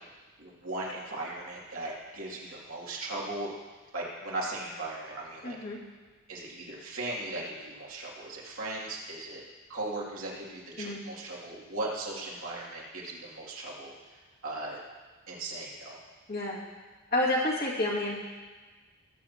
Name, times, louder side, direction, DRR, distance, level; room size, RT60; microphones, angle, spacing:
voice 1, 0.4-3.5 3.9-5.6 6.3-9.4 9.7-13.9 14.4-14.8 15.3-16.0, right 2 dB, 75° right, -4 dB, 2.7 m, -38 dB
voice 2, 5.4-5.8 10.8-11.0 16.3-16.6 17.1-18.2, left 1 dB, 45° left, -4 dB, 2.2 m, -29 dB
20.0 x 8.1 x 2.9 m, 1.3 s
head